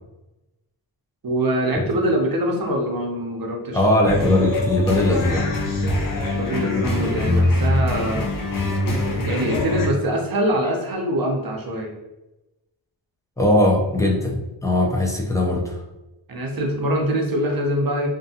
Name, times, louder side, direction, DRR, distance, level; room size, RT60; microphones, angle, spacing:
voice 1, 1.2-3.8 6.3-8.3 9.2-11.9 16.3-18.1, right 1 dB, 45° right, 1 dB, 0.7 m, -23 dB
voice 2, 3.7-5.6 13.4-15.8, left 1 dB, 5° left, 0 dB, 0.4 m, -20 dB
sound 1, 4.0-9.9, left 2 dB, 45° left, 0.7 m, -23 dB
2.5 x 2.3 x 2.7 m, 0.99 s
cardioid pair, 80°, 48 cm